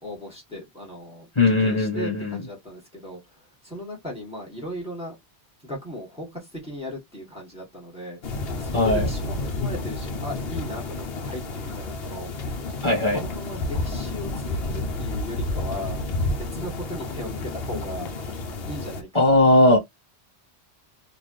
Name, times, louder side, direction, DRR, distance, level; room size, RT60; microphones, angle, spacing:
voice 1, 0.0-5.2 5.6-16.0 16.5-18.1 18.7-19.3, equal, 5° right, 2.1 m, -37 dB
voice 2, 1.3-2.4 8.7-9.1 12.8-13.2 19.1-19.8, left 1 dB, 25° left, 1.5 m, -18 dB
sound 1, 8.2-19.0, left 2 dB, 65° left, 1.0 m, -30 dB
3.9 x 2.5 x 3.3 m
omnidirectional pair, 1.1 m